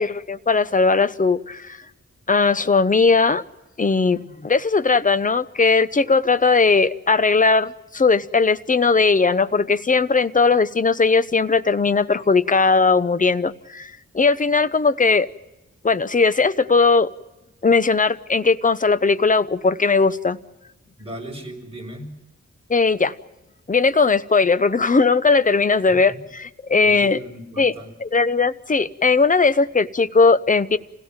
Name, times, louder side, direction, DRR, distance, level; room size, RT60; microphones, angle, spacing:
voice 1, 0.0-1.8 2.3-3.4 3.8-15.3 15.8-17.1 17.6-20.4 22.7-23.1 23.7-27.2 27.6-27.7 28.0-30.8, left 4 dB, 25° left, 14 dB, 0.8 m, -18 dB
voice 2, 21.0-22.1 26.1-26.2 26.8-27.9, right 1 dB, 20° right, 1 dB, 5.6 m, -36 dB
27.5 x 17.0 x 8.9 m, 1.0 s
wide cardioid pair, 115°, 29 cm